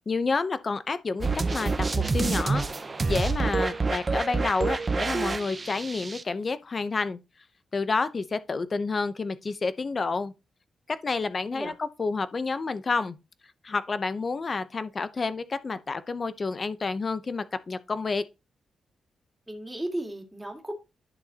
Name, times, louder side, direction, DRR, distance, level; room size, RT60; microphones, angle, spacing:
voice 1, 0.1-2.7 3.1-7.2 7.7-10.3 11.0-13.2 13.6-18.2, left 4 dB, 35° left, 0.7 m, -29 dB
sound 1, 1.2-6.2, right 4 dB, 30° right, 0.7 m, -27 dB
voice 2, 19.5-20.7, right 1 dB, 5° right, 2.1 m, -34 dB
11.0 x 6.3 x 2.9 m
wide cardioid pair, 130°, 0 cm